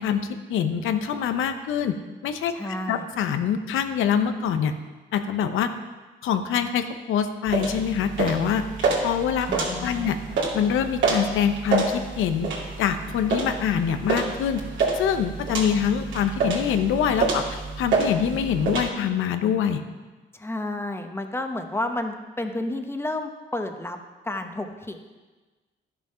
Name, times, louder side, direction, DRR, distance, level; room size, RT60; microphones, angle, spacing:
voice 1, 0.0-2.0 2.2-2.5 2.9-4.7 5.1-5.7 6.2-8.6 9.0-10.2 10.5-12.5 12.8-14.6 14.9-17.4 17.8-19.8, left 8 dB, 85° left, 8 dB, 0.8 m, -25 dB
voice 2, 2.5-3.0 9.5-10.2 20.3-24.0 24.2-25.0, left 1 dB, 10° left, 5 dB, 1.1 m, -31 dB
sound 1, 7.5-18.9, right 3 dB, 70° right, 2.6 m, -28 dB
11.5 x 6.7 x 5.6 m, 1.2 s
cardioid pair, 90°, 20 cm